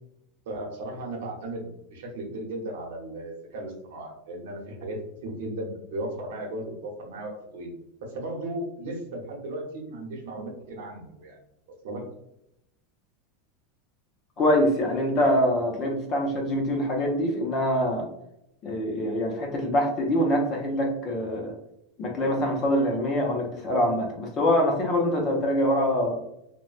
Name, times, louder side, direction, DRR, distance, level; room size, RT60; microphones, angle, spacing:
voice 1, 0.5-7.7 8.0-11.4 11.8-12.1, right 1 dB, 70° right, 1 dB, 0.8 m, -36 dB
voice 2, 14.4-18.1 18.6-21.5 22.0-26.2, equal, 25° left, 1 dB, 0.5 m, -24 dB
3.0 x 2.1 x 2.4 m, 0.80 s
supercardioid pair, 175°, 0 cm